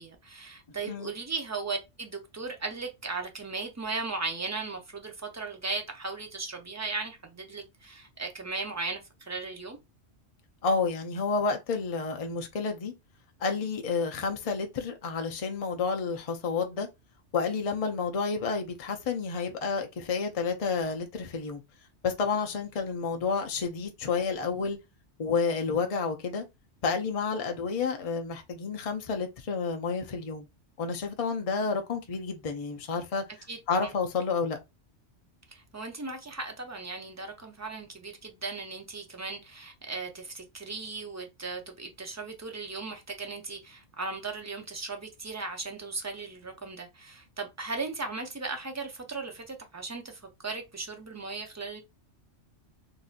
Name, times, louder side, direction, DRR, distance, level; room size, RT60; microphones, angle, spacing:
voice 1, 0.0-9.8 33.5-33.9 35.5-51.8, right 3 dB, 25° right, 0.4 m, -37 dB
voice 2, 10.6-12.9 13.4-16.9 17.3-21.6 22.0-24.8 25.2-26.4 26.8-30.5 30.8-33.2 33.7-34.6, left 5 dB, 40° left, 0.6 m, -30 dB
4.0 x 2.6 x 2.4 m
omnidirectional pair, 1.2 m